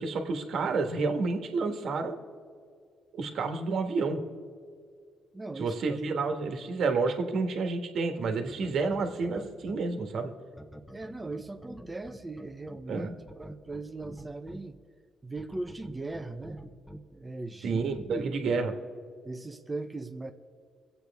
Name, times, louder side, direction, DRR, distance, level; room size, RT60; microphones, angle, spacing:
voice 1, 0.0-2.2 3.1-4.2 5.6-10.3 12.9-13.1 17.6-18.7, right 4 dB, 65° right, 5 dB, 1.4 m, -30 dB
voice 2, 5.3-6.0 10.9-13.1 13.4-14.8 15.2-16.6 17.1-17.8 18.1-18.7 19.2-20.3, right 2 dB, 20° right, 7 dB, 0.7 m, -39 dB
sound 1, 8.5-9.8 10.6-14.6 15.4-17.0 17.8-18.0, equal, ahead, 1.1 m, -45 dB
24.0 x 8.1 x 3.5 m, 2.2 s
cardioid pair, 90°, 0 cm